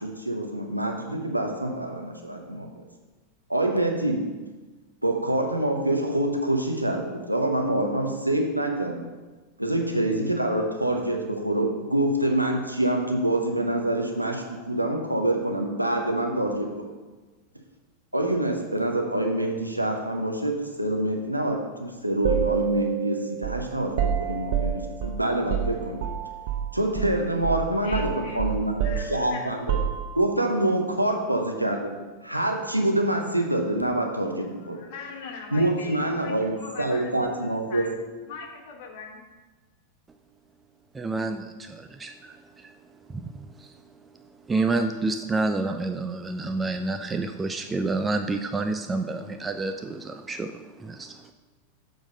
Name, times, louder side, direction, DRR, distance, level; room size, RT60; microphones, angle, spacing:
voice 1, 0.0-2.7 3.5-4.2 5.0-9.0 9.6-16.7 18.1-26.0 26.7-29.8 30.1-31.9 32.2-34.8 35.5-37.9, right 1 dB, 85° right, 2 dB, 0.9 m, -26 dB
sound 1, 22.2-26.7 27.0-27.2 27.4-30.4, right 9 dB, 50° right, 0.7 m, -28 dB
voice 2, 27.8-28.5 28.8-29.6 34.6-39.2, left 5 dB, 50° left, 2 dB, 1.2 m, -41 dB
voice 3, 40.9-42.7 43.1-43.3 43.6-43.7 44.5-51.1, right 3 dB, 15° right, 7 dB, 0.3 m, -29 dB
7.0 x 3.9 x 5.2 m, 1.3 s
figure-of-eight pair, 90°, 0 cm